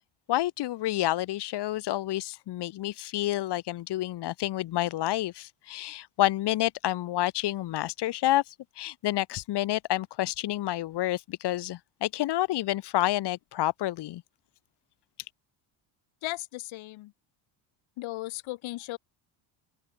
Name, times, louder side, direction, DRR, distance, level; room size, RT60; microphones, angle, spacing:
voice 1, 0.3-14.2, left 15 dB, 55° left, 2.2 m, -29 dB
voice 2, 16.2-17.1 18.0-19.0, left 18 dB, 75° left, 6.5 m, -36 dB
cardioid pair, 160°, 47 cm